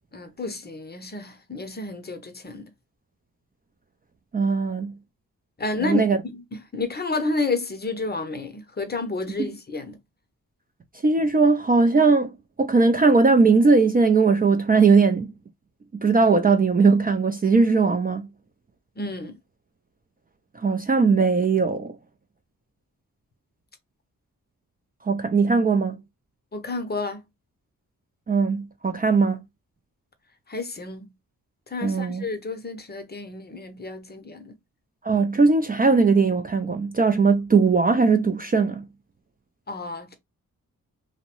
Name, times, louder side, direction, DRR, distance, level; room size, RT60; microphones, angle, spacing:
voice 1, 0.1-2.7 5.6-10.0 19.0-19.4 26.5-27.2 30.5-31.1 31.7-34.6 39.7-40.2, left 3 dB, 30° left, 0.6 m, -30 dB
voice 2, 4.3-4.9 5.8-6.2 9.4-9.5 11.0-15.3 15.9-18.2 20.5-22.0 25.0-26.0 28.3-29.4 31.8-32.3 35.0-38.8, right 4 dB, 25° right, 0.3 m, -19 dB
2.6 x 2.0 x 2.9 m
cardioid pair, 75°, 34 cm